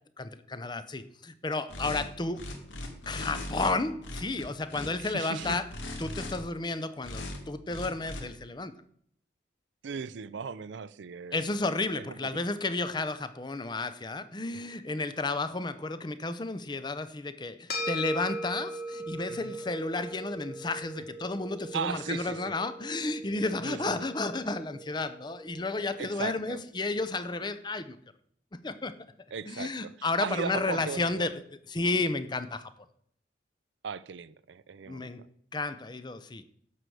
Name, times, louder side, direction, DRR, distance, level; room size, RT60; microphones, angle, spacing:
voice 1, 0.2-2.4 3.1-5.7 6.0-8.7 11.3-28.0 28.6-28.9 29.5-31.3 31.7-32.7 34.9-35.2 35.5-36.4, left 3 dB, 25° left, 0.6 m, -32 dB
sound 1, 1.7-2.0 2.3-3.7 4.0-4.9 5.3-6.4 7.0-7.4 7.7-8.2, left 1 dB, 90° left, 2.1 m, -38 dB
voice 2, 5.0-5.6 9.8-11.5 12.0-12.4 19.3-19.5 21.7-22.5 23.6-24.1 26.0-26.6 29.3-31.3 33.8-35.1, right 6 dB, 75° right, 0.5 m, -38 dB
sound 2, 17.7-26.3, equal, 55° left, 2.3 m, -40 dB
11.5 x 4.7 x 7.7 m
head